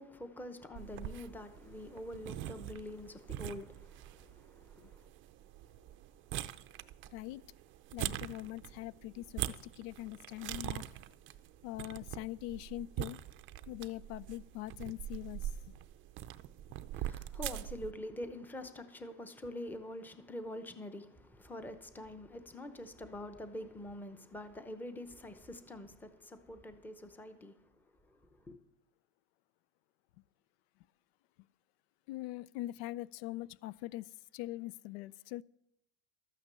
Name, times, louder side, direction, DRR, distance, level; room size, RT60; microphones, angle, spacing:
voice 1, 0.0-5.1 16.9-27.6 28.1-28.6, left 1 dB, 5° left, 0.7 m, -46 dB
sound 1, 0.8-17.9, right 13 dB, 40° right, 0.5 m, -43 dB
voice 2, 7.1-7.4 7.9-10.8 11.6-13.2 13.7-15.7 32.1-35.4, left 16 dB, 80° left, 0.5 m, -43 dB
13.0 x 9.3 x 6.7 m
cardioid pair, 145°, 30 cm